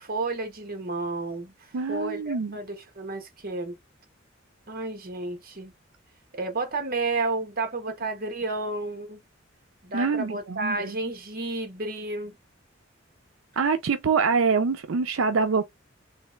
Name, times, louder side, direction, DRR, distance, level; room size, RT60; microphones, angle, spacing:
voice 1, 0.0-1.5 1.9-3.7 4.7-5.7 6.3-9.2 9.8-12.4, right 2 dB, 50° right, 1.3 m, -31 dB
voice 2, 1.7-2.6 9.9-11.0 13.6-15.6, right 5 dB, 85° right, 0.5 m, -25 dB
3.3 x 3.1 x 3.1 m
head